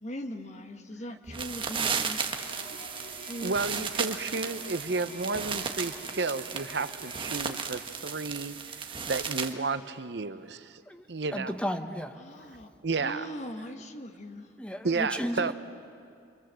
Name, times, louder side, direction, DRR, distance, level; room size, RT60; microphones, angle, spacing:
voice 1, 0.0-2.2 3.2-3.8 7.2-7.4 12.2-12.7 13.0-14.5 15.3-15.5, equal, 40° left, 6 dB, 1.5 m, -40 dB
sound 1, 1.3-9.5, right 6 dB, 30° right, 1.3 m, -35 dB
sound 2, 2.3-7.6, equal, 70° left, 5.4 m, -48 dB
voice 2, 3.0-8.8 9.1-10.8 11.1-11.5 12.8-13.3 14.8-15.5, right 4 dB, 70° right, 12 dB, 0.8 m, -32 dB
voice 3, 11.3-12.2 14.6-15.5, equal, 5° left, 7 dB, 1.1 m, -34 dB
28.5 x 23.5 x 7.6 m, 2.4 s
head